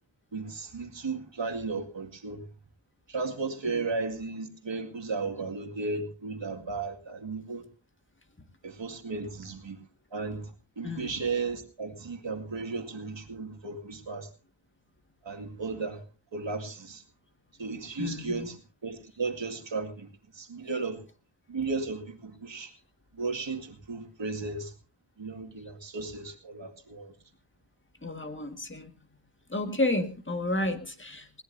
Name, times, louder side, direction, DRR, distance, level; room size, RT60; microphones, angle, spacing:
voice 1, 0.3-2.4 3.1-7.6 8.6-9.8 10.1-10.5 10.8-14.3 15.3-16.0 16.3-17.0 17.6-20.1 20.4-21.0 21.5-22.7 23.2-24.7 25.2-27.1, right 4 dB, 70° right, 2.3 m, -35 dB
voice 2, 10.8-11.2 18.0-18.5 28.0-28.9 29.5-31.4, left 2 dB, 25° left, 2.0 m, -31 dB
20.5 x 17.5 x 2.7 m
wide cardioid pair, 75°, 45 cm